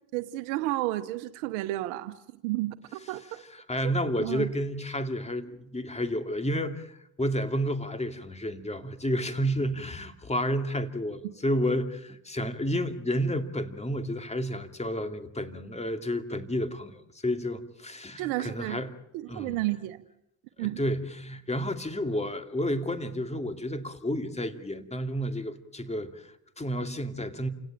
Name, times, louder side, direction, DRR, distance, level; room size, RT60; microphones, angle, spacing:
voice 1, 0.1-2.1 2.4-3.2 4.0-4.5 18.2-18.8 19.1-20.0 20.6-20.8, right 17 dB, 90° right, 1.0 m, -31 dB
voice 2, 3.5-18.9 19.3-19.6 20.6-27.5, equal, 15° left, 2.5 m, -31 dB
28.5 x 17.5 x 9.0 m
supercardioid pair, 70°, 39 cm